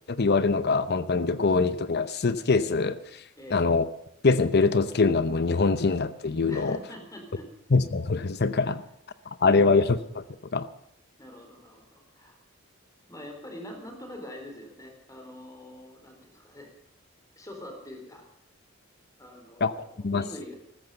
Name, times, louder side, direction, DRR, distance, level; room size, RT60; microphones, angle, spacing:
voice 1, 0.1-3.2 3.5-3.9 4.2-6.8 7.7-8.8 9.4-10.2 10.5-10.7 19.6-19.7 20.0-20.2, left 4 dB, 50° left, 13 dB, 0.7 m, -23 dB
voice 2, 6.5-7.5 11.2-12.4 13.1-16.7 17.4-18.2 19.2-20.6, left 1 dB, 15° left, 3 dB, 4.2 m, -44 dB
14.5 x 14.0 x 6.8 m, 0.72 s
head